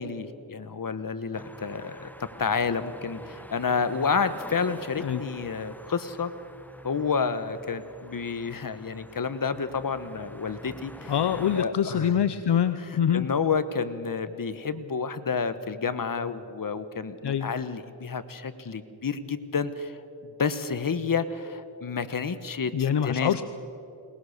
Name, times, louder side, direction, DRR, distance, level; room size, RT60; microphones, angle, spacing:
voice 1, 0.0-6.3 6.8-12.2 12.7-20.0 20.2-23.3, left 5 dB, 45° left, 12 dB, 1.2 m, -30 dB
sound 1, 1.3-11.7, left 1 dB, 5° left, 1.1 m, -46 dB
voice 2, 11.1-13.3 17.2-17.5 22.7-23.4, left 9 dB, 65° left, 11 dB, 0.8 m, -25 dB
21.5 x 19.5 x 6.6 m, 2.8 s
cardioid pair, 60°, 44 cm